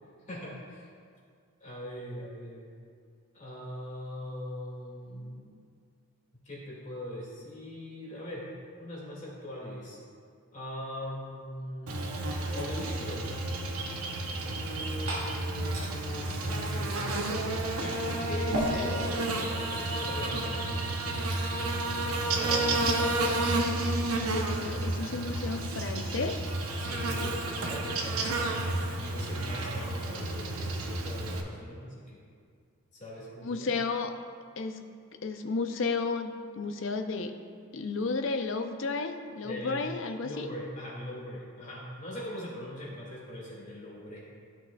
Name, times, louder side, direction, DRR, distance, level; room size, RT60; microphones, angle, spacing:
voice 1, 0.3-0.9 1.6-2.7 3.3-5.6 6.4-8.4 8.8-10.0 10.5-12.0 12.5-13.4 14.4-17.5 17.8-20.7 22.3-22.7 26.8-28.5 28.9-32.2 32.9-33.7 39.4-39.8 40.2-44.2, left 1 dB, 35° left, -6 dB, 2.1 m, -41 dB
Buzz, 11.9-31.4, right 2 dB, 90° right, 0.9 m, -31 dB
Liquid, 14.6-21.7, equal, 70° right, 1.7 m, -39 dB
voice 2, 24.6-26.4 33.4-34.1 34.6-34.8 35.2-37.3 37.7-40.5, left 4 dB, 60° left, 6 dB, 0.5 m, -32 dB
14.0 x 5.9 x 2.3 m, 2.2 s
head